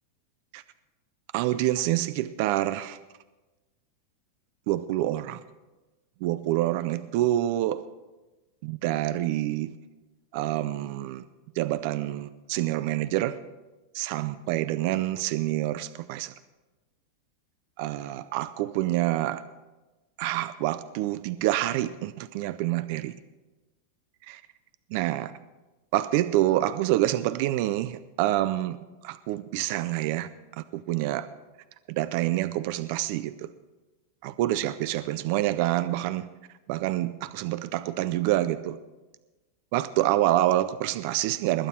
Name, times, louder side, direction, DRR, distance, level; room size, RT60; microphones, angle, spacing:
voice 1, 1.3-3.0 4.7-5.4 6.2-7.8 8.6-9.8 10.3-11.2 11.6-13.4 13.9-16.3 17.8-19.4 20.2-23.1 24.3-24.4 24.9-25.3 25.9-28.8 29.0-30.3 30.6-31.3 31.9-33.5 34.2-36.3 36.7-38.8 39.7-41.7, right 14 dB, 40° right, 15 dB, 0.4 m, -27 dB
20.5 x 9.1 x 4.4 m, 1.1 s
supercardioid pair, 175°, 0 cm